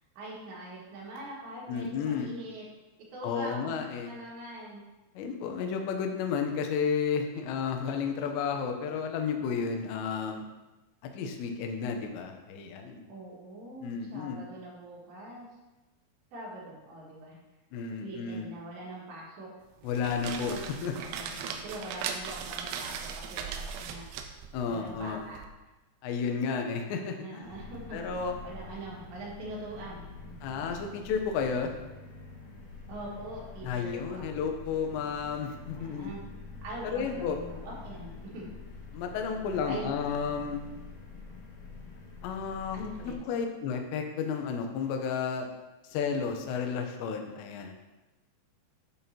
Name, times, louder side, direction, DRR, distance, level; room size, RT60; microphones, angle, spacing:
voice 1, 0.2-2.7 3.1-4.8 9.4-9.6 13.1-15.5 16.3-17.4 18.0-19.5 20.4-24.0 24.6-25.4 27.2-30.4 32.9-34.5 35.7-36.2 36.6-38.5 39.7-39.9 42.7-43.2, right 1 dB, 70° right, -5 dB, 3.9 m, -43 dB
voice 2, 1.7-2.3 3.2-4.1 5.2-10.4 11.0-13.1 13.8-14.4 17.7-18.5 19.8-20.9 21.3-21.4 24.5-25.2 26.0-27.6 27.9-28.4 30.4-31.7 33.6-36.1 36.9-37.4 38.9-40.7 42.2-42.8 43.0-45.5 45.9-47.7, left 6 dB, 75° left, 4 dB, 2.9 m, -32 dB
sound 1, 19.8-25.5, right 7 dB, 85° right, 3.0 m, -39 dB
sound 2, 27.4-43.1, left 4 dB, 60° left, 2.5 m, -46 dB
10.5 x 7.2 x 2.9 m, 1.1 s
omnidirectional pair, 5.5 m